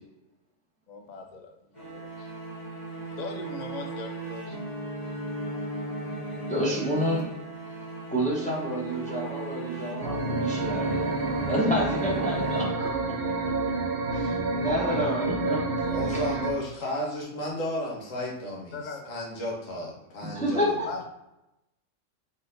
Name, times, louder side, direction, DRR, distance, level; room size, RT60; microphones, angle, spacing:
voice 1, 0.9-1.5 1.9-2.3 3.1-4.6 18.7-19.1 20.8-21.0, left 3 dB, 55° left, 3 dB, 0.5 m, -39 dB
sound 1, 1.7-13.2, right 2 dB, 35° left, 1.7 m, -36 dB
voice 2, 6.5-7.3 8.1-11.1 11.5-12.9 14.1-14.2 14.5-15.6 16.0-16.2 20.2-20.9, equal, 5° left, -5 dB, 0.8 m, -29 dB
sound 2, 10.0-16.5, right 3 dB, 60° right, 0.7 m, -29 dB
voice 3, 15.9-18.8 19.1-20.8, left 1 dB, 80° left, -4 dB, 1.4 m, -33 dB
4.0 x 3.9 x 2.6 m, 0.90 s
omnidirectional pair, 1.3 m